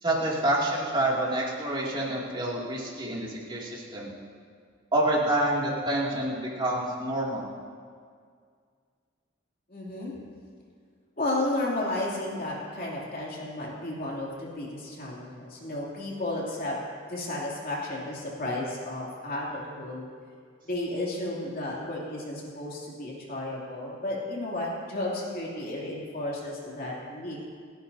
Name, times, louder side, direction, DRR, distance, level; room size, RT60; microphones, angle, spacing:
voice 1, 0.0-4.1 4.9-7.5, right 1 dB, 25° right, -5 dB, 2.6 m, -27 dB
voice 2, 9.7-10.1 11.2-16.7 17.1-20.0 20.6-27.4, left 1 dB, 45° left, -4 dB, 3.0 m, -33 dB
29.5 x 10.5 x 2.8 m, 2.1 s
head